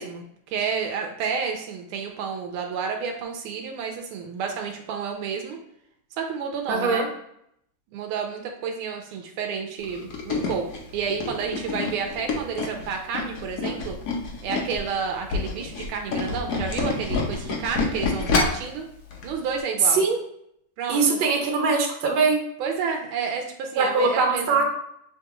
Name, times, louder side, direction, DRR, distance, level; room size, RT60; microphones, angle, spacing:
voice 1, 0.0-5.6 6.2-7.1 7.9-10.7 10.9-14.0 14.4-18.8 19.2-20.0 20.8-21.2 22.6-24.6, right 6 dB, 90° right, 3 dB, 1.5 m, -30 dB
voice 2, 6.7-7.1 19.9-20.2 20.9-22.4 23.8-24.7, right 4 dB, 70° right, 2 dB, 1.5 m, -21 dB
Tools, 9.8-14.8 15.2-18.7 19.1-19.3 19.6-19.7, left 4 dB, 65° left, 1.0 m, -27 dB
6.6 x 2.3 x 2.9 m, 0.73 s
omnidirectional pair, 2.3 m